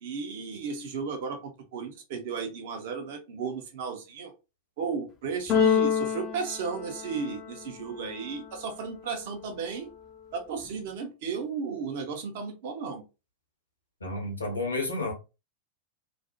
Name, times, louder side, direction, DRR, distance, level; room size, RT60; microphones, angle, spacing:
voice 1, 0.0-4.3 4.8-9.9 10.3-13.0, right 5 dB, 50° right, 0.7 m, -34 dB
Keyboard (musical), 5.5-7.6, left 7 dB, 30° left, 0.3 m, -26 dB
voice 2, 14.0-15.1, left 2 dB, 75° left, 0.7 m, -31 dB
2.4 x 2.0 x 2.6 m
figure-of-eight pair, 90°, 0 cm